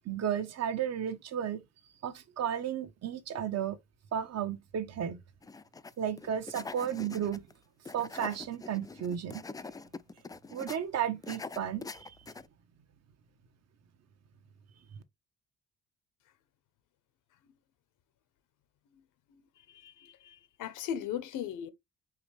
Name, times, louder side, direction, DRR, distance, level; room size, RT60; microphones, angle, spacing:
voice 1, 0.0-1.6 2.0-3.8 4.1-5.2 6.0-7.5 7.9-9.5 10.5-12.1, right 9 dB, 60° right, 1.0 m, -33 dB
sound 1, 5.4-5.9 6.2-7.5 7.9-10.8 11.2-12.5, left 4 dB, 15° left, 0.3 m, -44 dB
voice 2, 19.7-21.7, left 9 dB, 85° left, 0.9 m, -38 dB
4.9 x 3.3 x 3.3 m
cardioid pair, 90°, 30 cm